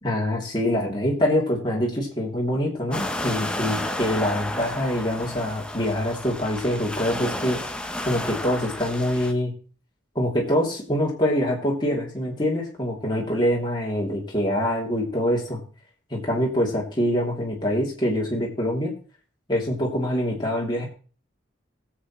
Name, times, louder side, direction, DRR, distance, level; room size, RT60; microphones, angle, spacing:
voice 1, 0.0-7.6 8.1-9.5 10.1-15.6 16.1-18.9 19.5-20.9, equal, 25° left, -3 dB, 3.0 m, -25 dB
sound 1, 2.9-9.3, left 1 dB, 5° left, 0.8 m, -32 dB
20.5 x 8.1 x 3.2 m, 0.38 s
head